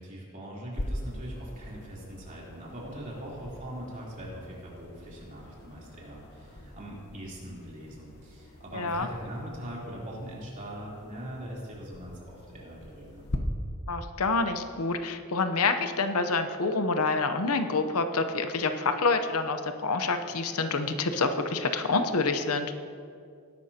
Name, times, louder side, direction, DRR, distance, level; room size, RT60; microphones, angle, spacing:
voice 1, 0.0-13.3, right 1 dB, 35° right, -5 dB, 3.5 m, -41 dB
sound 1, 0.7-13.4, left 1 dB, 50° left, 1.0 m, -43 dB
voice 2, 8.7-9.1 13.9-22.7, left 3 dB, 85° left, 8 dB, 0.8 m, -27 dB
19.5 x 11.5 x 2.9 m, 2.4 s
head